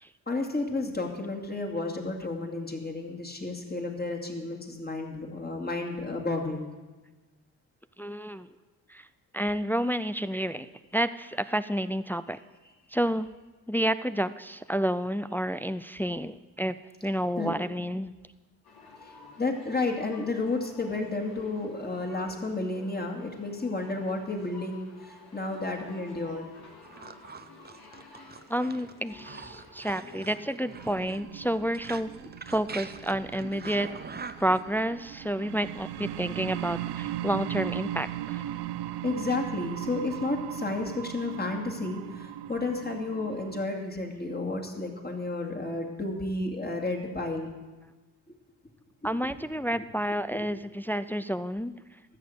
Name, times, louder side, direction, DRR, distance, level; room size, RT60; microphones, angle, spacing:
voice 1, 0.3-6.7 17.4-17.5 19.4-26.5 39.0-47.5 50.3-50.5, left 3 dB, 25° left, 2 dB, 2.4 m, -32 dB
voice 2, 8.0-8.5 8.9-9.1 9.3-10.7 10.9-12.4 12.9-13.3 13.7-16.8 17.0-18.1 28.5-34.0 34.4-38.4 49.0-51.7, equal, 5° left, 13 dB, 0.4 m, -30 dB
sound 1, 18.6-31.0, left 3 dB, 70° left, 3.2 m, -50 dB
sound 2, 26.8-34.6, right 5 dB, 25° right, 0.7 m, -43 dB
sound 3, 30.7-43.7, right 12 dB, 90° right, 0.6 m, -38 dB
13.5 x 6.6 x 7.9 m, 1.2 s
cardioid pair, 65°, 39 cm